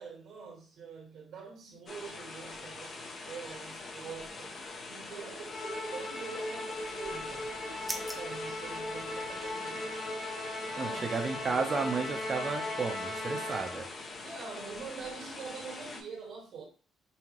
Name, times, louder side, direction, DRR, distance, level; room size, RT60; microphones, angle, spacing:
voice 1, 0.0-10.2 10.7-11.6 14.2-16.6, right 5 dB, 75° right, 1.8 m, -45 dB
sound 1, 1.9-16.0, left 3 dB, 50° left, 1.1 m, -44 dB
Musical instrument, 5.5-14.0, left 2 dB, 75° left, 2.0 m, -38 dB
sound 2, 6.8-9.6, equal, ahead, 0.8 m, -45 dB
voice 2, 10.8-13.9, right 4 dB, 45° right, 0.9 m, -33 dB
5.6 x 2.4 x 3.1 m
cardioid pair, 90°, 0 cm